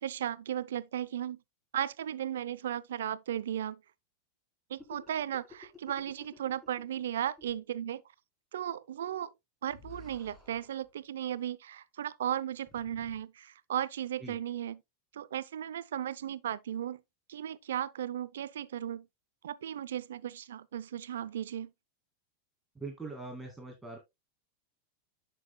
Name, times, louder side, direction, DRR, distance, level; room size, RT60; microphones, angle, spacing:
voice 1, 0.0-1.4 1.7-3.8 4.7-8.0 8.5-9.3 9.6-14.8 15.1-17.0 17.3-19.1 19.4-21.7, right 10 dB, 85° right, 0.5 m, -36 dB
sound 1, 4.8-7.1 7.4-7.5 9.7-10.9 12.6-13.2, left 3 dB, 10° left, 3.5 m, -53 dB
voice 2, 22.8-24.0, right 3 dB, 10° right, 2.2 m, -42 dB
9.5 x 6.4 x 2.2 m
hypercardioid pair, 115°, 0 cm